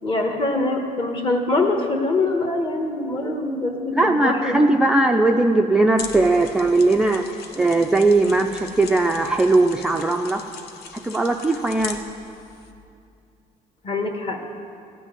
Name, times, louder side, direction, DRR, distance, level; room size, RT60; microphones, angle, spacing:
voice 1, 0.0-4.5 13.8-14.4, left 2 dB, 35° left, 4 dB, 1.4 m, -23 dB
voice 2, 3.9-10.4 10.9-12.0, right 2 dB, 5° right, 2 dB, 0.3 m, -19 dB
sound 1, 5.9-12.7, left 5 dB, 85° left, 1.1 m, -39 dB
15.0 x 6.2 x 9.2 m, 2.6 s
cardioid pair, 165°, 16 cm